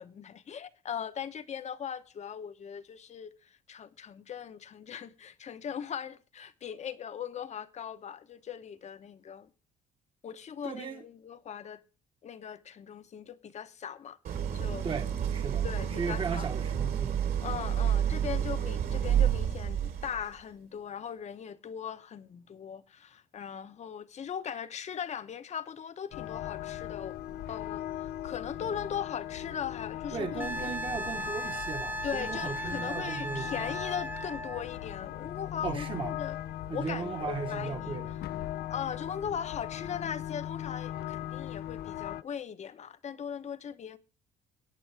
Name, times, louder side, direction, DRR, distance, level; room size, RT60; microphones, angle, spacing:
voice 1, 0.0-3.3 3.7-9.5 10.2-11.8 12.2-14.9 15.6-16.5 17.4-27.2 27.5-30.7 32.0-36.4 36.7-38.0 38.7-44.0, left 8 dB, 40° left, 1.0 m, -39 dB
voice 2, 10.6-11.0 14.8-17.2 30.1-33.5 35.6-36.2 36.7-38.2, right 5 dB, 30° right, 1.3 m, -37 dB
Idling, 14.2-20.3, right 9 dB, 65° right, 3.1 m, -30 dB
sound 1, 26.1-42.2, left 13 dB, 70° left, 0.6 m, -39 dB
Wind instrument woodwind instrument, 30.4-34.6 37.3-37.4, right 1 dB, 10° right, 0.8 m, -37 dB
22.5 x 8.4 x 3.4 m
cardioid pair, 110°, 17 cm